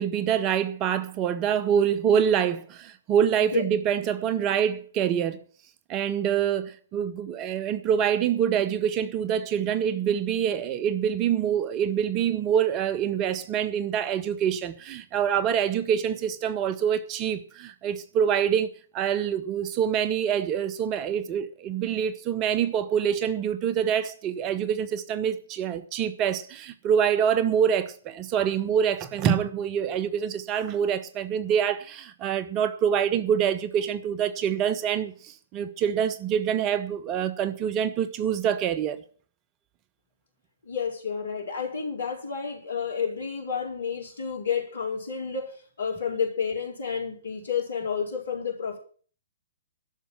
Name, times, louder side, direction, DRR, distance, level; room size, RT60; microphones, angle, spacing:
voice 1, 0.0-5.4 5.9-39.0, right 8 dB, 25° right, 0.9 m, -26 dB
voice 2, 40.6-48.8, left 6 dB, 65° left, 4.5 m, -30 dB
12.0 x 6.8 x 9.0 m
figure-of-eight pair, 120°, 0 cm